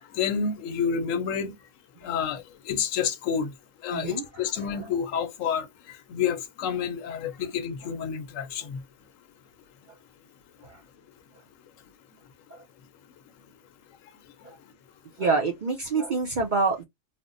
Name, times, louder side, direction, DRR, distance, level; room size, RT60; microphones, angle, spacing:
voice 1, 0.2-1.5 2.0-3.5 3.8-5.7 6.1-8.8, left 7 dB, 80° left, 1.0 m, -29 dB
voice 2, 3.9-4.8 10.6-10.8 12.5-12.6 15.2-16.8, right 4 dB, 50° right, 0.6 m, -27 dB
3.3 x 2.1 x 2.5 m
omnidirectional pair, 1.3 m